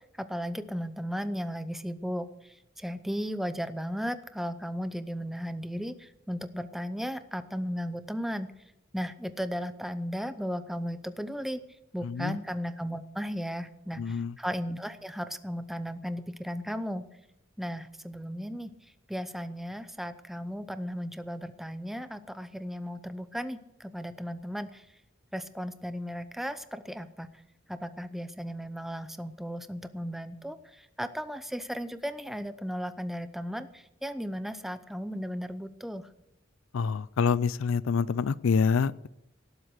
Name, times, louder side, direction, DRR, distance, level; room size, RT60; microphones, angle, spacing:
voice 1, 0.2-8.5 8.9-11.6 11.9-17.0 17.6-18.7 19.1-24.9 25.3-27.3 27.7-36.1, equal, ahead, 11 dB, 0.6 m, -35 dB
voice 2, 12.0-12.4 14.0-14.3 36.7-39.1, left 5 dB, 90° left, 18 dB, 0.4 m, -26 dB
18.0 x 8.0 x 6.6 m, 0.85 s
head